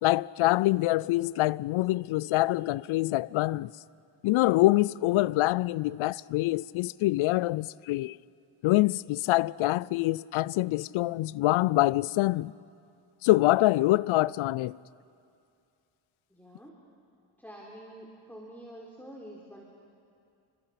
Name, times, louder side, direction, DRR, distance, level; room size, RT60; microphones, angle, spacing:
voice 1, 0.0-3.7 4.2-8.2 8.6-12.5 13.2-14.7, left 18 dB, 75° left, 0.6 m, -25 dB
voice 2, 16.3-16.7 17.4-19.6, right 1 dB, 5° left, 3.9 m, -47 dB
30.0 x 25.5 x 5.9 m
cardioid pair, 85°, 49 cm